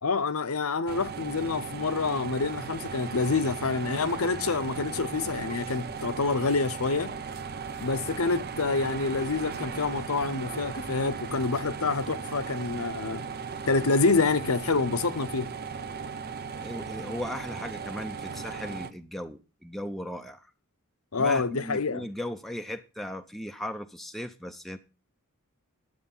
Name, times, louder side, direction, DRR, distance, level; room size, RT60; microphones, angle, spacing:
voice 1, 0.0-7.1 7.8-13.2 13.7-15.5 21.1-22.1, left 4 dB, 75° left, 0.9 m, -27 dB
sound 1, 0.9-18.9, right 5 dB, 45° right, 0.8 m, -37 dB
voice 2, 16.6-20.5 21.2-24.8, equal, ahead, 0.6 m, -37 dB
10.5 x 8.0 x 5.5 m
head